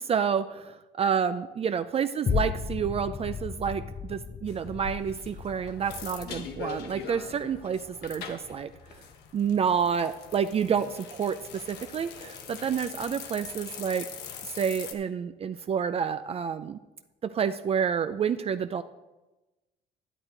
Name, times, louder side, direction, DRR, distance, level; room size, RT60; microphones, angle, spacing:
voice 1, 0.0-8.7 9.3-11.4 11.7-14.1 14.4-16.8 17.2-18.8, right 7 dB, 35° right, 11 dB, 0.4 m, -29 dB
sound 1, 2.3-10.8 11.3-11.4, left 6 dB, 25° left, 0.4 m, -36 dB
sound 2, 4.5-14.9, left 7 dB, 80° left, 1.2 m, -43 dB
11.0 x 11.0 x 3.9 m, 1.1 s
cardioid pair, 110°, 17 cm